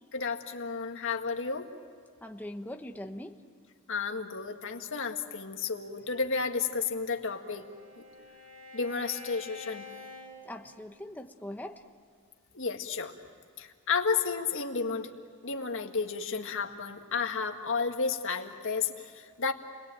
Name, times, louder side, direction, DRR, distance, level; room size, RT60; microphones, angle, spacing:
voice 1, 0.1-1.7 3.9-7.6 8.7-9.9 12.5-13.1 13.6-15.1 15.4-19.5, left 5 dB, 60° left, 4 dB, 1.9 m, -32 dB
voice 2, 2.2-3.4 10.4-11.8, left 1 dB, 10° left, 4 dB, 1.0 m, -41 dB
Bowed string instrument, 6.8-11.2, left 3 dB, 80° right, 5.9 m, -49 dB
30.0 x 21.5 x 9.1 m, 2.2 s
head